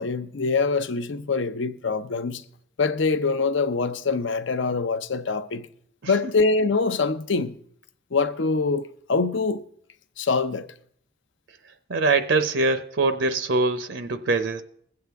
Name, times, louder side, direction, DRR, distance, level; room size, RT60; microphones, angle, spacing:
voice 1, 0.0-2.4 2.8-5.7 6.1-7.6 8.1-9.6 10.2-10.7, left 4 dB, 70° left, 0.6 m, -24 dB
voice 2, 11.9-14.6, right 3 dB, 70° right, 0.6 m, -23 dB
21.5 x 7.9 x 3.5 m
head